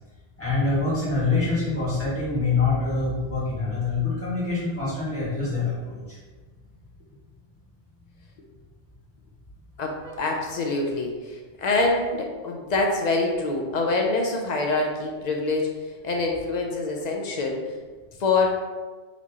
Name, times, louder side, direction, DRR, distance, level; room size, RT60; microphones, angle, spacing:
voice 1, 0.4-6.2 10.0-10.4, left 3 dB, 10° left, -10 dB, 1.5 m, -25 dB
voice 2, 9.8-15.7 16.0-17.6 18.2-18.5, left 3 dB, 60° left, 1 dB, 0.4 m, -25 dB
4.2 x 3.0 x 2.7 m, 1.4 s
omnidirectional pair, 1.3 m